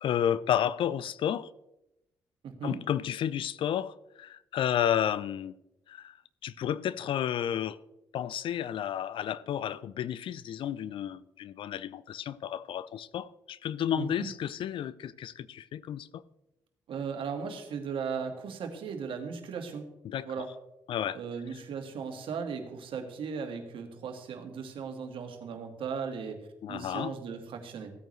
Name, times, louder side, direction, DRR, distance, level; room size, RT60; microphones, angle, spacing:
voice 1, 0.0-1.5 2.6-5.5 5.9-6.2 6.4-7.8 8.1-16.2 20.0-20.3 20.9-21.2 26.6-27.1, left 10 dB, 65° left, 0.5 m, -31 dB
voice 2, 2.4-2.8 14.0-14.3 16.9-19.9 20.2-20.5 21.1-26.4 26.7-27.9, right 6 dB, 65° right, 1.8 m, -37 dB
15.5 x 8.9 x 3.2 m
hypercardioid pair, 50°, 9 cm